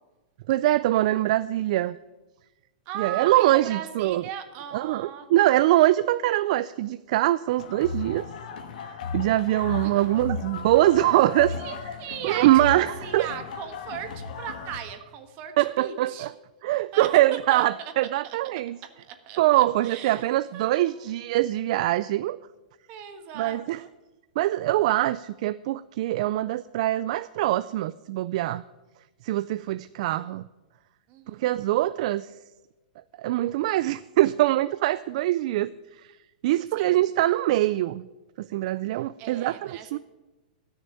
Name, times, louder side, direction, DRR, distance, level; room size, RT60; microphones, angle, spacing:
voice 1, 0.5-2.0 3.0-4.3 4.7-8.3 9.1-11.5 12.2-13.3 15.6-16.3 16.6-18.8 19.4-22.4 23.4-23.8 24.4-28.6 29.2-30.5 31.3-32.3 33.2-35.7 36.4-38.1 38.4-40.0, right 15 dB, 50° right, 16 dB, 0.3 m, -23 dB
voice 2, 2.8-5.7 9.8-10.1 11.5-16.3 16.9-17.1 17.5-17.9 18.2-18.4 19.1-20.3 20.5-21.1 22.9-23.9 31.1-31.4 36.8-36.9 39.2-40.0, right 9 dB, 35° right, 7 dB, 1.4 m, -38 dB
sound 1, 7.6-14.8, left 5 dB, 65° left, 1.5 m, -36 dB
12.5 x 6.5 x 9.1 m, 1.1 s
hypercardioid pair, 150°, 5 cm